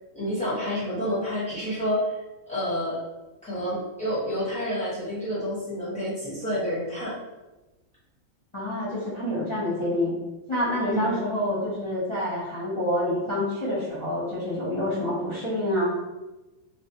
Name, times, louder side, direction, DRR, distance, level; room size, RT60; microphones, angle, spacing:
voice 1, 0.1-2.2 2.5-3.0 3.4-7.2 10.9-11.2, equal, 5° left, -9 dB, 0.8 m, -29 dB
voice 2, 8.5-10.2 10.5-15.9, left 1 dB, 50° left, -10 dB, 0.3 m, -27 dB
2.5 x 2.0 x 2.7 m, 1.1 s
omnidirectional pair, 1.5 m